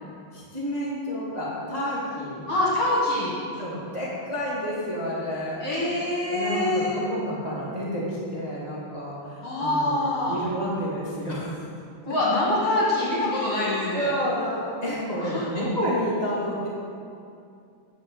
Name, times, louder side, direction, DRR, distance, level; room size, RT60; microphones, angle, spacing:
voice 1, 0.0-2.5 3.6-5.9 6.2-11.6 12.0-12.1 13.5-16.7, equal, 60° right, -8 dB, 0.4 m, -30 dB
voice 2, 2.5-3.4 5.6-7.0 9.4-10.4 12.0-14.1 15.2-15.7, left 1 dB, 50° left, -7 dB, 2.1 m, -25 dB
9.7 x 4.6 x 7.8 m, 2.5 s
omnidirectional pair, 4.1 m